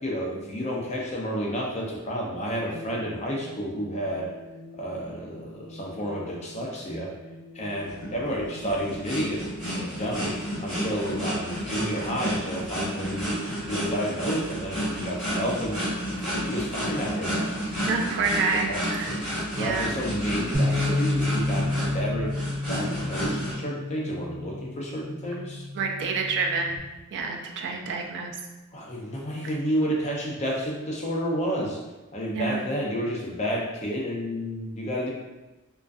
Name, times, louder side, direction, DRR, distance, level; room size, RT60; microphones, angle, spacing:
voice 1, 0.0-4.3 4.8-7.1 7.5-9.4 9.8-13.3 13.7-15.8 16.2-17.5 18.5-19.2 19.6-22.4 22.7-25.7 28.7-31.8 32.1-35.1, equal, 30° left, -2 dB, 0.4 m, -30 dB
sound 1, 2.7-15.5, left 1 dB, 70° left, 0.7 m, -47 dB
sound 2, 7.9-23.5, equal, ahead, 1.5 m, -31 dB
voice 2, 17.8-19.1 19.6-19.9 25.7-26.8 27.1-28.4 29.4-29.5 32.3-32.7, right 4 dB, 55° right, 2 dB, 0.3 m, -28 dB
Bass guitar, 20.5-26.8, left 2 dB, 25° right, 0.7 m, -30 dB
2.4 x 2.3 x 2.3 m, 1.1 s
head